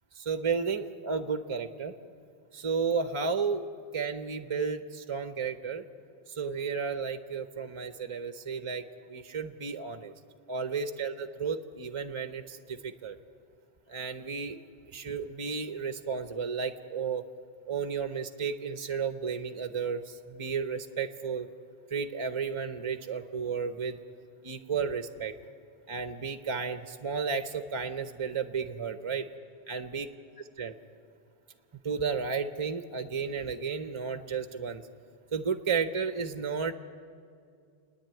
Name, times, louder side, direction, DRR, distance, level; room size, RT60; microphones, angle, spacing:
voice 1, 0.1-1.9 2.5-3.7 3.9-5.8 6.3-10.1 10.5-13.2 13.9-14.6 14.9-17.2 17.7-21.5 21.9-24.0 24.4-25.3 25.9-29.3 29.7-30.0 30.6-30.7 31.8-34.8 35.3-36.7, right 5 dB, 35° right, 10 dB, 0.7 m, -33 dB
29.5 x 10.0 x 9.1 m, 2.3 s
omnidirectional pair, 1.1 m